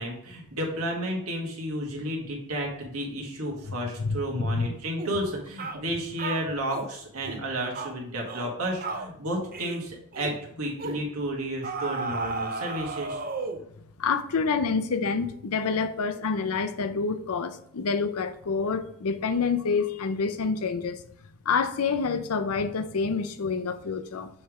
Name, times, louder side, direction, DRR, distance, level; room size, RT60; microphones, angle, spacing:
voice 1, 0.0-13.2, right 1 dB, 75° right, 1.8 m, -32 dB
voice 2, 4.0-4.7 14.0-21.0 21.5-24.3, left 5 dB, 80° left, 0.6 m, -27 dB
sound 1, 5.0-5.2 5.6-5.8 6.2-6.9 7.2-7.4 7.7-7.9 8.3-8.5 8.8-9.1 9.5-9.8 10.1-10.4 10.8-11.0 11.6-13.7, right 3 dB, 40° right, 0.6 m, -34 dB
7.1 x 3.4 x 4.8 m
head